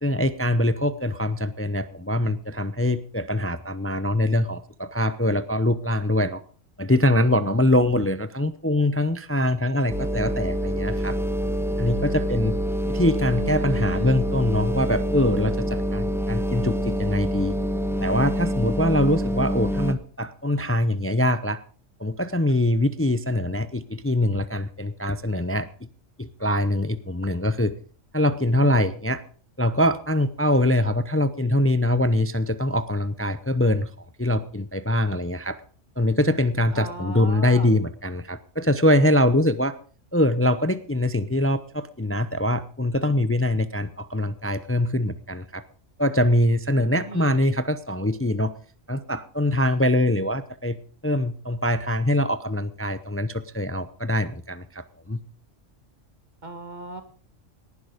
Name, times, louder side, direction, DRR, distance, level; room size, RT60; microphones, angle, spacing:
voice 1, 0.0-6.4 6.8-11.2 11.8-12.5 12.9-17.6 18.0-21.6 22.0-25.9 26.2-27.7 28.1-29.2 29.6-33.9 34.2-35.6 36.0-39.7 40.1-45.6 46.0-48.5 48.9-50.8 51.0-55.2, left 1 dB, 15° left, 13 dB, 0.5 m, -23 dB
sound 1, 9.9-19.9, equal, ahead, 1.0 m, -26 dB
voice 2, 13.4-14.2 36.7-37.7 46.9-47.4 56.4-57.0, right 2 dB, 35° right, 8 dB, 2.0 m, -37 dB
18.5 x 11.0 x 5.1 m, 0.42 s
omnidirectional pair, 1.4 m